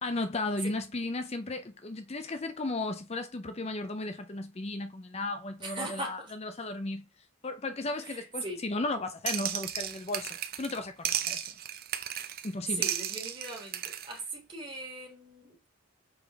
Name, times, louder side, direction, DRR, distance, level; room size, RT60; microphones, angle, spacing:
voice 1, 0.0-7.1 7.4-11.5 12.4-12.8, left 2 dB, 30° left, 0.5 m, -35 dB
voice 2, 5.6-6.3 8.0-8.6 12.7-15.7, right 2 dB, 25° right, 3.1 m, -39 dB
sound 1, 9.3-10.8 11.0-12.5 12.8-14.1, right 11 dB, 45° right, 0.7 m, -34 dB
7.1 x 4.9 x 3.5 m
head